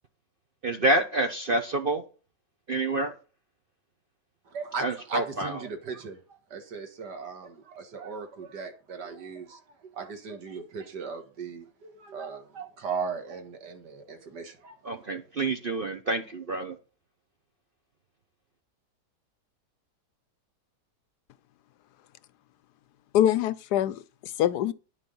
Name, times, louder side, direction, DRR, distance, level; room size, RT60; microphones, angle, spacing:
voice 1, 0.6-2.0 2.7-3.1 4.8-5.6 14.8-16.8, right 2 dB, 45° right, 0.8 m, -27 dB
voice 2, 4.5-14.8, right 5 dB, 85° right, 2.2 m, -38 dB
voice 3, 23.1-24.7, left 11 dB, 75° left, 1.2 m, -24 dB
10.0 x 6.9 x 5.4 m
omnidirectional pair, 1.8 m